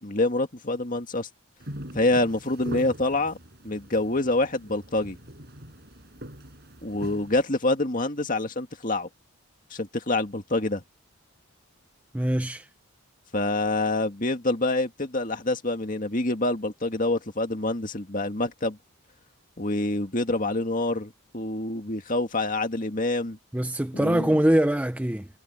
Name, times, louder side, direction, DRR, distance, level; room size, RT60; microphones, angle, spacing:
voice 1, 0.0-1.3 1.9-3.4 3.6-5.2 6.8-9.1 9.7-10.8 13.3-18.8 19.6-23.4 23.9-24.4, left 2 dB, 35° left, 2.1 m, -26 dB
sound 1, 1.6-7.4, equal, 45° right, 6.9 m, -42 dB
voice 2, 12.1-12.7 23.5-25.3, right 1 dB, 5° right, 0.5 m, -23 dB
head